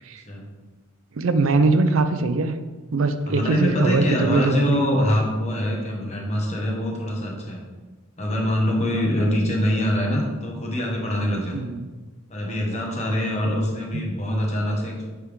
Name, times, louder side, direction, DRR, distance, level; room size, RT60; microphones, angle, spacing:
voice 1, 1.1-2.5 2.9-4.9 11.5-11.9 13.4-13.5 13.9-14.0, right 3 dB, 75° right, 10 dB, 0.5 m, -22 dB
voice 2, 3.3-7.6 8.2-11.7 12.3-15.0, left 1 dB, 35° left, -1 dB, 1.4 m, -24 dB
7.1 x 3.5 x 5.1 m, 1.3 s
head